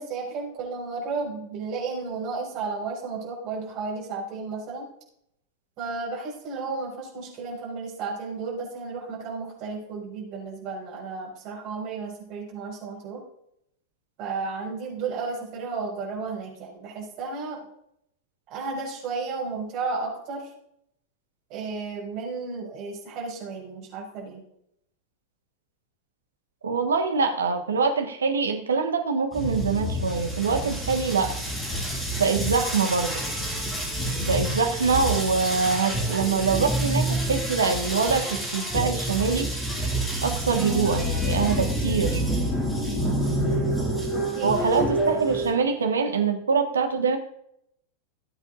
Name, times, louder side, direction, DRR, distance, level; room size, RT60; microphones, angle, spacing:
voice 1, 0.0-4.9 5.8-13.2 14.2-17.6 18.5-20.5 21.5-24.4 44.1-44.9, right 4 dB, 40° right, -3 dB, 5.2 m, -33 dB
voice 2, 26.6-31.3 32.2-33.2 34.2-39.5 40.2-42.2 44.4-47.2, right 5 dB, 70° right, 5 dB, 1.5 m, -24 dB
sound 1, 29.3-45.5, right 1 dB, 10° left, 4.4 m, -28 dB
19.5 x 8.2 x 2.6 m, 0.74 s
figure-of-eight pair, 90°, 0 cm